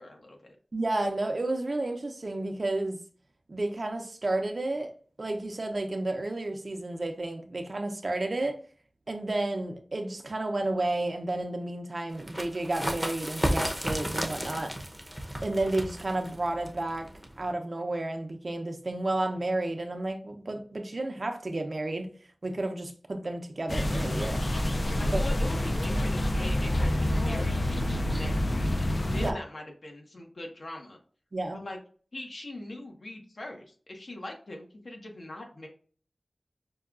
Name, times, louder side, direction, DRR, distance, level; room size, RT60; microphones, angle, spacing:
voice 1, 0.0-0.6 25.0-28.7 29.1-31.0 31.5-31.8 32.1-35.7, left 1 dB, 70° left, 0.9 m, -41 dB
voice 2, 0.7-3.0 3.5-4.9 5.2-8.6 9.1-14.7 15.4-17.1 17.4-22.1 22.4-24.5 25.0-25.2 29.1-29.4 31.3-31.6, right 2 dB, 55° right, 0.6 m, -31 dB
sound 1, 12.1-17.5, equal, ahead, 0.7 m, -33 dB
sound 2, 23.7-29.3, left 1 dB, 45° left, 0.4 m, -27 dB
5.4 x 2.3 x 2.4 m
wide cardioid pair, 65°, 0 cm